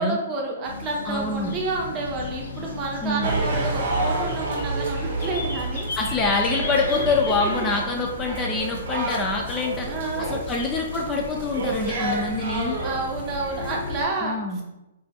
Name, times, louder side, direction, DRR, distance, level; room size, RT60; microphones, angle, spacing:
voice 1, 0.0-5.9 6.9-7.1 9.8-10.5 12.0-12.1 12.8-14.6, right 3 dB, 30° right, -1 dB, 0.6 m, -30 dB
sound 1, 0.6-14.1, left 3 dB, 80° left, 0.5 m, -36 dB
voice 2, 1.1-1.5 3.0-3.3 6.0-9.9 10.2-12.8 14.2-14.6, left 3 dB, 20° left, 0 dB, 0.3 m, -25 dB
sound 2, 3.2-14.0, right 2 dB, 65° right, 0.7 m, -30 dB
2.4 x 2.3 x 2.6 m, 0.95 s
hypercardioid pair, 135°, 0 cm